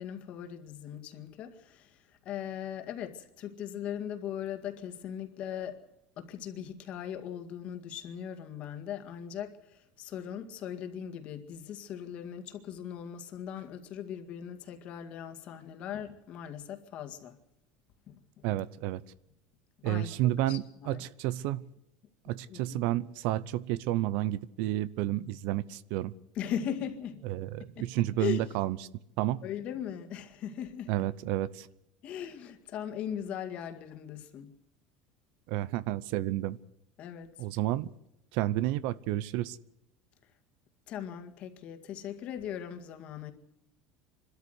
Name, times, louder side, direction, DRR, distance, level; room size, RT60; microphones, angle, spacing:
voice 1, 0.0-5.8 6.2-17.4 18.1-18.4 19.8-21.1 22.5-22.9 26.4-27.2 27.8-27.9 28.2-28.4 29.4-30.9 32.0-34.5 37.0-37.3 40.9-43.3, left 9 dB, 40° left, 2.0 m, -39 dB
voice 2, 18.4-19.0 19.8-21.7 22.2-26.1 27.2-28.8 29.2-29.4 30.9-31.7 35.5-36.6 37.4-37.9 38.3-39.6, right 14 dB, 60° right, 0.7 m, -31 dB
26.0 x 13.0 x 8.0 m
cardioid pair, 155°, 3 cm